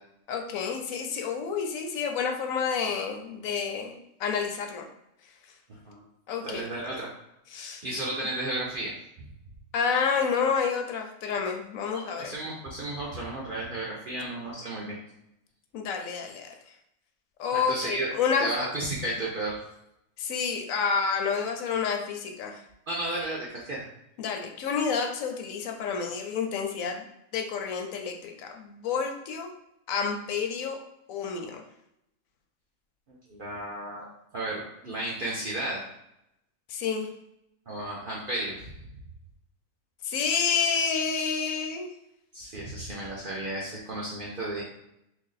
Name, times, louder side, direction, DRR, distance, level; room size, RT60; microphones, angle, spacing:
voice 1, 0.3-4.9 6.3-7.0 7.5-7.8 9.7-12.3 15.7-16.5 17.4-18.5 20.2-22.6 24.2-27.1 27.3-29.5 29.9-30.8 31.1-31.6 36.7-37.1 40.0-41.9, left 6 dB, 70° left, 3 dB, 0.9 m, -29 dB
voice 2, 5.7-6.0 6.4-7.1 7.5-9.3 11.9-15.0 17.5-18.1 18.4-19.6 22.9-23.9 33.1-34.1 34.3-35.8 37.7-38.7 42.3-44.6, right 1 dB, 55° right, -5 dB, 0.6 m, -33 dB
3.0 x 2.6 x 3.9 m, 0.82 s
omnidirectional pair, 1.5 m